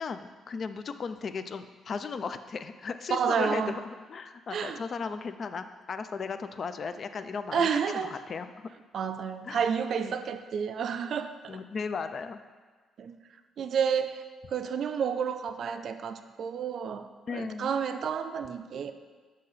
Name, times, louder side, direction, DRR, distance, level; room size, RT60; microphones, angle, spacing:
voice 1, 0.0-8.7 9.4-9.7 10.0-10.1 11.5-12.4 17.2-17.7, left 5 dB, 50° left, 10 dB, 0.3 m, -36 dB
voice 2, 3.1-3.8 4.5-4.8 7.5-8.1 8.9-11.4 13.0-13.2 13.6-14.2 14.5-18.9, right 7 dB, 60° right, 9 dB, 0.3 m, -30 dB
6.3 x 2.8 x 5.5 m, 1.4 s
cardioid pair, 90°, 0 cm